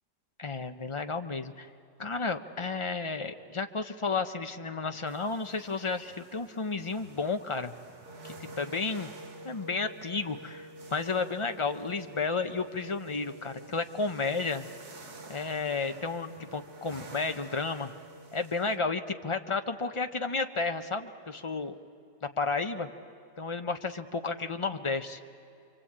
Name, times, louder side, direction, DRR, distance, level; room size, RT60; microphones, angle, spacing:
voice 1, 0.4-1.7 2.0-7.7 8.2-9.1 9.4-14.7 15.3-17.9 18.3-21.8 22.2-22.9 23.4-25.2, left 4 dB, 40° left, 7 dB, 0.4 m, -32 dB
sound 1, 5.1-18.8, right 4 dB, 60° right, 2.2 m, -53 dB
sound 2, 8.0-18.5, right 1 dB, 5° left, 4.0 m, -49 dB
28.0 x 24.5 x 8.7 m, 2.7 s
omnidirectional pair, 1.9 m